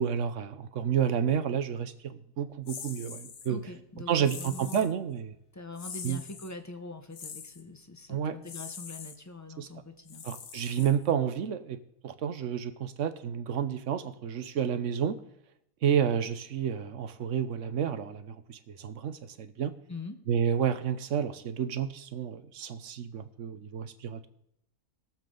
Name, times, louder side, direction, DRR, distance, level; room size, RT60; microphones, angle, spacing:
voice 1, 0.0-3.6 4.1-5.3 6.0-6.2 8.1-8.4 9.6-9.7 10.2-11.8 12.0-15.2 15.8-19.7 20.3-24.3, right 8 dB, 55° right, 11 dB, 1.0 m, -30 dB
sound 1, 2.7-3.5 4.2-4.9 5.8-6.5 7.1-7.6 8.4-9.2 10.1-11.2, left 6 dB, 60° left, 1.3 m, -43 dB
voice 2, 3.5-5.2 5.5-10.2 19.9-20.2, left 3 dB, 15° left, 7 dB, 0.6 m, -43 dB
20.5 x 7.4 x 3.8 m, 0.80 s
omnidirectional pair, 1.7 m